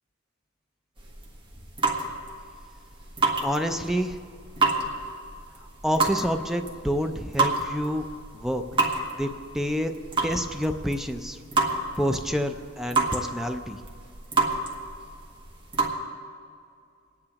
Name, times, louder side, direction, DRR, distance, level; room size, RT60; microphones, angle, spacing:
sound 1, 1.0-15.9, right 3 dB, 25° right, 1.4 m, -29 dB
voice 1, 3.4-4.2 5.8-8.0 8.3-8.6 9.2-9.9 10.2-11.4 12.0-13.8, equal, ahead, 6 dB, 0.4 m, -28 dB
29.0 x 9.7 x 2.9 m, 2.3 s
head